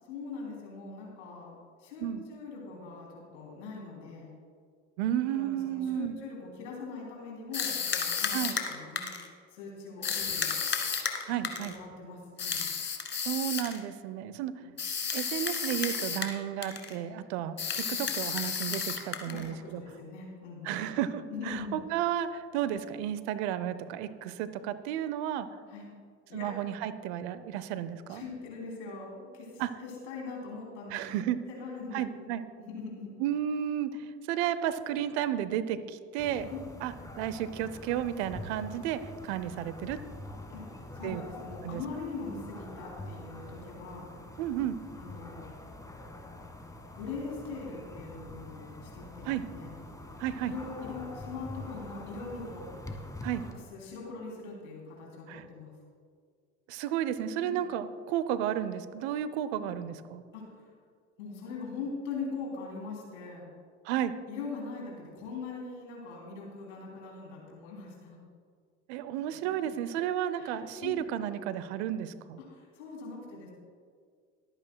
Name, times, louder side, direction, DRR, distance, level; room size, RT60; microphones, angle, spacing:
voice 1, 0.1-1.5 1.8-4.3 5.3-9.1 9.5-10.5 11.2-12.6 14.6-14.7 17.9-18.0 19.2-20.8 21.3-21.8 25.7-25.9 26.3-26.5 28.1-31.0 31.5-32.3 32.6-33.1 36.5-36.6 40.5-40.6 40.9-44.1 44.9-45.5 46.9-49.7 50.5-52.7 53.4-55.7 57.4-57.6 59.6-59.7 60.3-60.6 61.2-63.5 64.3-68.2 69.6-69.7 70.4-71.0 72.4-73.5, left 4 dB, 80° left, -2 dB, 3.2 m, -42 dB
voice 2, 5.0-6.1 8.3-8.5 11.3-11.7 13.2-14.5 15.1-19.8 20.6-25.5 26.3-28.2 29.6-29.7 30.9-31.4 31.9-32.4 33.2-36.5 36.8-40.0 41.0-41.2 41.6-41.8 44.4-44.8 49.2-49.4 50.2-50.5 53.2-53.4 55.3-55.4 56.7-60.2 63.8-64.1 68.9-72.4, right 10 dB, 70° right, 14 dB, 0.7 m, -32 dB
sound 1, 7.5-9.3 10.0-11.8 12.4-13.8 14.8-16.4 16.6-17.0 17.6-19.5, left 6 dB, 35° left, 1.6 m, -32 dB
sound 2, 36.2-53.5, left 1 dB, 10° left, 1.5 m, -45 dB
22.5 x 8.9 x 2.3 m, 2.1 s
hypercardioid pair, 65°, 34 cm